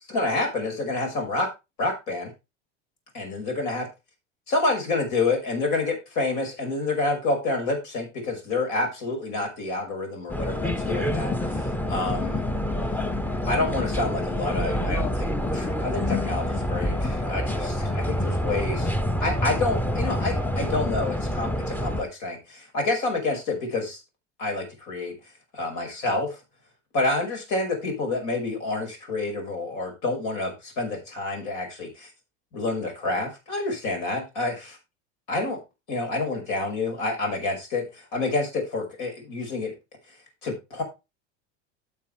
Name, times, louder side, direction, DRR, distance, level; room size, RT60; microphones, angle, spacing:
voice 1, 0.1-1.5 1.8-2.3 3.1-3.9 4.5-12.4 13.5-24.0 24.4-25.1 25.5-26.4 26.9-32.1 32.5-34.5 35.3-35.6 35.9-39.7 40.4-40.8, left 2 dB, 60° left, 3 dB, 5.7 m, -28 dB
sound 1, 10.3-22.0, left 1 dB, 5° left, 0.9 m, -27 dB
12.5 x 7.4 x 3.3 m, 0.25 s
hypercardioid pair, 80°, 35 cm